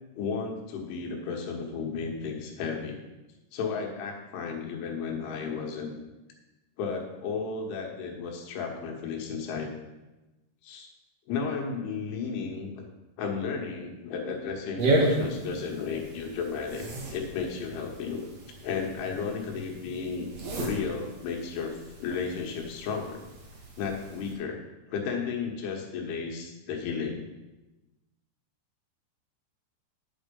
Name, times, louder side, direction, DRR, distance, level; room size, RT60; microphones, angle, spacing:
voice 1, 0.2-3.0 3.5-5.9 6.8-9.7 10.6-10.9 11.3-12.9 13.2-16.9 17.1-18.3 18.6-20.3 20.6-23.2 23.8-24.6 24.9-27.3, left 5 dB, 85° left, 1 dB, 3.9 m, -33 dB
sound 1, 14.8-24.3, right 1 dB, 55° right, 1.9 m, -33 dB
9.8 x 7.9 x 5.4 m, 1.1 s
omnidirectional pair, 5.4 m